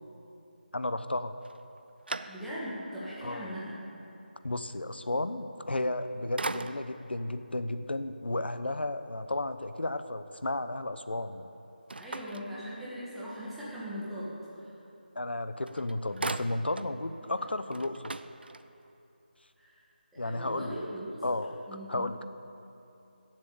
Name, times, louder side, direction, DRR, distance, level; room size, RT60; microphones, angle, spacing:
voice 1, 0.7-1.3 3.2-3.5 4.4-11.5 15.2-18.1 20.2-20.8 21.2-21.6 21.9-22.2, left 2 dB, 85° left, 11 dB, 0.8 m, -33 dB
sound 1, 1.4-2.8 3.4-3.5 5.7-6.0 6.4-7.1 11.9-13.2 15.3-15.4 15.7-17.0 17.3-17.4 17.7-18.9, right 3 dB, 70° right, 0.6 m, -39 dB
voice 2, 2.3-3.8 12.0-14.8 17.3-17.5 19.6-19.8 20.1-21.4 21.7-22.1, equal, ahead, -11 dB, 1.8 m, -40 dB
17.0 x 7.6 x 7.1 m, 2.9 s
figure-of-eight pair, 170°, 6 cm